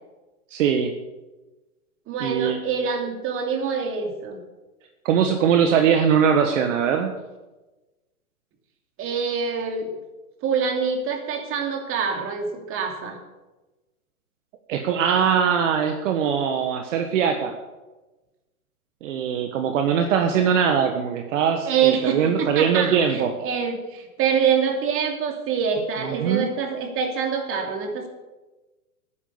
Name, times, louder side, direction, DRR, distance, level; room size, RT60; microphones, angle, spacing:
voice 1, 0.5-0.9 2.2-2.6 5.0-7.2 14.7-17.5 19.0-23.3 26.0-26.5, right 7 dB, 60° right, 5 dB, 1.5 m, -21 dB
voice 2, 2.1-4.4 9.0-9.9 10.4-13.2 21.7-28.1, right 6 dB, 30° right, 4 dB, 2.8 m, -25 dB
12.0 x 10.5 x 7.1 m, 1.1 s
hypercardioid pair, 120°, 43 cm